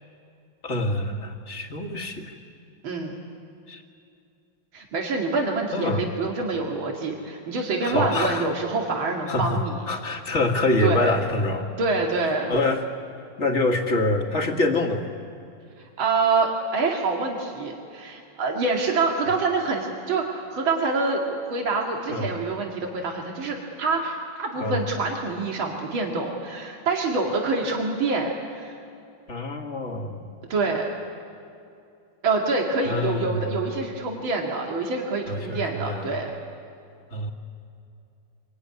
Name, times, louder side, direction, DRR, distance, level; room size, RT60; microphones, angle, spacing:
voice 1, 0.6-2.3 3.7-3.8 5.7-6.1 7.8-8.5 9.3-11.7 12.5-12.8 13.4-15.0 22.1-22.3 24.6-24.8 29.3-30.3 32.8-33.5 35.3-36.1 37.1-37.3, left 2 dB, 35° left, 3 dB, 2.3 m, -25 dB
voice 2, 4.7-9.7 10.8-11.1 11.8-12.5 16.0-28.8 30.5-30.9 32.2-36.3, right 3 dB, 90° right, 0 dB, 3.0 m, -26 dB
26.0 x 23.5 x 9.7 m, 2.5 s
omnidirectional pair, 2.1 m